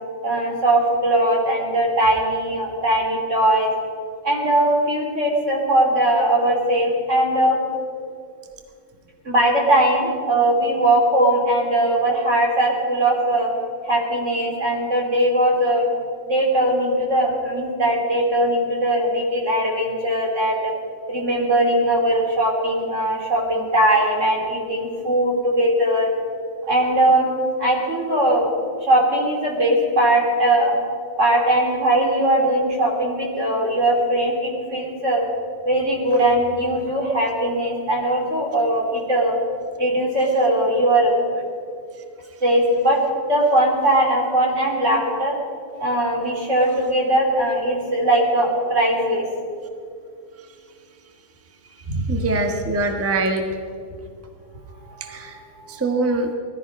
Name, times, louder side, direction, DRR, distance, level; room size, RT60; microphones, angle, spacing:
voice 1, 0.2-3.7 4.2-7.6 9.2-13.5 13.8-15.9 16.3-20.7 21.1-26.1 26.7-27.3 27.6-28.5 28.8-30.7 31.2-35.2 35.6-39.4 39.8-41.1 42.4-43.0 43.3-45.4 45.8-49.3 51.9-52.0 54.9-55.8, right 1 dB, 40° right, 0 dB, 3.2 m, -20 dB
voice 2, 52.1-53.4 55.0-55.4 55.7-56.3, right 3 dB, 10° right, 3 dB, 0.9 m, -23 dB
18.5 x 13.5 x 5.4 m, 2.3 s
omnidirectional pair, 2.1 m